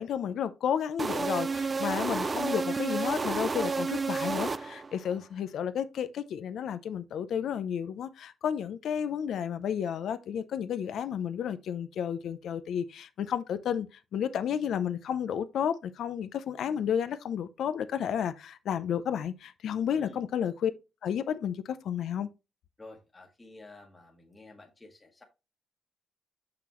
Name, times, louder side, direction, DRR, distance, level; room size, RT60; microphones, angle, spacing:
voice 1, 0.0-13.9 14.1-20.7 21.0-22.3, left 8 dB, 75° left, 0.6 m, -32 dB
sound 1, 1.0-5.1, right 4 dB, 30° right, 0.3 m, -31 dB
voice 2, 19.9-20.3 22.8-25.2, left 2 dB, 20° left, 1.3 m, -51 dB
5.8 x 5.8 x 3.1 m
cardioid pair, 95°, 0 cm